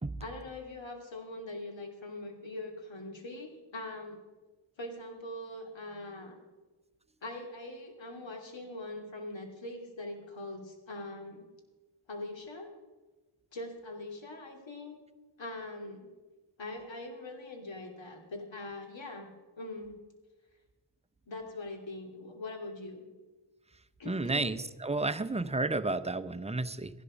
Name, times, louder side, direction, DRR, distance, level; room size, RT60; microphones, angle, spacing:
voice 1, 0.2-4.2 4.8-6.4 7.2-11.4 12.1-12.7 13.5-15.0 15.4-16.1 16.6-19.3 19.6-19.9 21.3-23.1 24.0-24.5, left 2 dB, 65° left, 3 dB, 2.9 m, -42 dB
voice 2, 24.1-26.9, right 2 dB, 15° right, 11 dB, 0.7 m, -32 dB
15.0 x 11.0 x 5.1 m, 1.2 s
cardioid pair, 55°, 49 cm